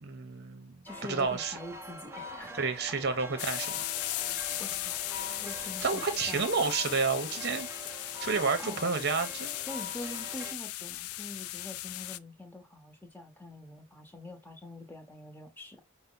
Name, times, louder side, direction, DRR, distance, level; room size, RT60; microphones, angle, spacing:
voice 1, 0.0-0.8 1.1-1.6 2.5-3.8 5.8-7.7 8.2-9.5, right 4 dB, 50° right, 0.8 m, -30 dB
voice 2, 0.8-2.5 4.6-4.9 5.4-6.5 8.6-8.8 9.7-15.8, left 1 dB, 10° left, 1.1 m, -45 dB
sound 1, 0.9-10.5, equal, 10° right, 0.5 m, -44 dB
sound 2, 3.4-12.2, left 15 dB, 85° left, 0.3 m, -37 dB
5.6 x 2.2 x 3.8 m
head